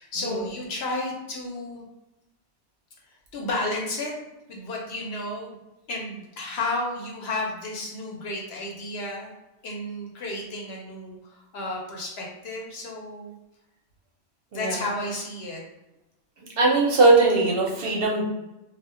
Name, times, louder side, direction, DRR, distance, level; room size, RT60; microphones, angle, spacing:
voice 1, 0.0-1.9 3.3-4.1 4.5-5.6 5.9-9.3 9.6-13.3 14.5-15.6, left 2 dB, 65° left, -1 dB, 0.8 m, -32 dB
voice 2, 16.6-18.2, right 3 dB, 65° right, -1 dB, 0.7 m, -20 dB
2.1 x 2.0 x 3.5 m, 0.97 s
omnidirectional pair, 1.2 m